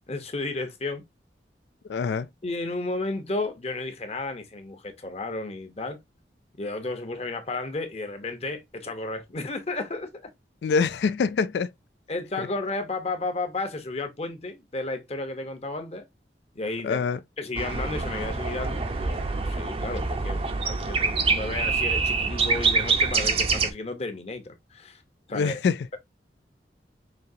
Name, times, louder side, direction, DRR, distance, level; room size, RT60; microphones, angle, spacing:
voice 1, 0.1-1.0 2.4-6.0 6.6-10.2 12.1-16.1 16.5-17.0 17.4-25.0 25.3-25.6, left 2 dB, 35° left, 0.8 m, -33 dB
voice 2, 1.9-2.3 10.6-11.7 12.4-12.5 16.8-17.2 25.3-25.9, left 5 dB, 70° left, 0.3 m, -25 dB
sound 1, 17.5-23.7, right 4 dB, 35° right, 0.6 m, -25 dB
5.1 x 2.8 x 2.7 m
head